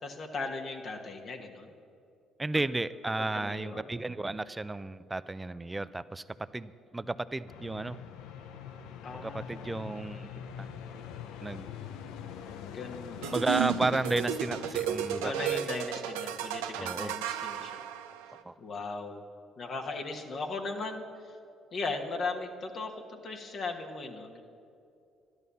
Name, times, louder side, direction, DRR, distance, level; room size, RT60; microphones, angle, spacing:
voice 1, 0.0-1.7 3.2-3.8 9.0-9.8 12.7-13.4 15.2-17.8 18.6-19.2 19.6-21.4 21.7-24.4, left 3 dB, 55° left, 2 dB, 1.4 m, -38 dB
voice 2, 2.4-8.0 9.2-10.3 10.6-10.7 11.4-11.7 13.3-15.7 16.8-17.1 18.4-18.5, right 2 dB, 20° right, 15 dB, 0.5 m, -33 dB
sound 1, 7.5-15.6, left 7 dB, 75° left, 0.7 m, -44 dB
sound 2, 13.2-18.4, right 10 dB, 85° right, 0.5 m, -33 dB
12.5 x 11.0 x 7.0 m, 2.5 s
hypercardioid pair, 55°, 0 cm